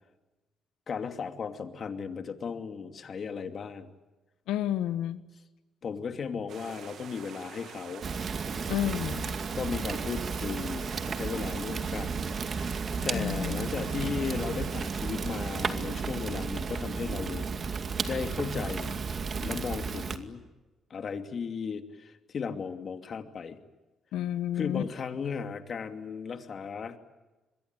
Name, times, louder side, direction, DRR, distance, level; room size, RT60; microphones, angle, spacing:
voice 1, 0.9-3.9 5.8-8.1 9.5-12.3 13.0-17.5 18.1-19.0 19.4-20.4 20.9-23.6 24.6-27.0, left 6 dB, 50° left, 6 dB, 2.6 m, -36 dB
voice 2, 4.5-5.2 8.7-9.4 13.1-13.7 24.1-24.8, left 11 dB, 90° left, 12 dB, 1.4 m, -31 dB
sound 1, 6.5-15.7, right 8 dB, 65° right, 1.8 m, -47 dB
Fire, 8.0-20.2, right 5 dB, 45° right, 2.3 m, -33 dB
27.5 x 22.5 x 9.1 m, 1.1 s
cardioid pair, 90°, 0 cm